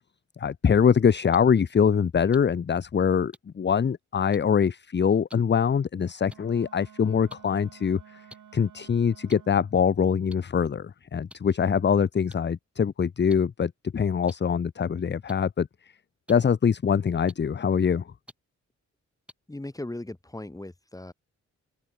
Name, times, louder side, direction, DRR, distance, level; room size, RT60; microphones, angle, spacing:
voice 1, 0.4-8.2 8.5-15.7 16.3-18.1, left 7 dB, 35° left, 0.8 m, -23 dB
sound 1, 1.3-1.4 2.3-2.4 3.3-3.4 4.3-4.4 5.3-5.4 6.3-6.4 7.3-7.4 8.3-8.4 9.3-9.4 10.3-10.4 11.3-11.4 12.3-12.4 13.3-13.4 14.3-14.4 15.3-15.4 16.3-16.4 17.3-17.4 18.3-18.4 19.3-19.4, equal, 5° right, 6.5 m, -46 dB
Wind instrument woodwind instrument, 6.2-9.9, right 9 dB, 80° right, 4.8 m, -52 dB
voice 2, 19.5-21.1, left 1 dB, 10° left, 3.7 m, -38 dB
open air
wide cardioid pair, 110°, 30 cm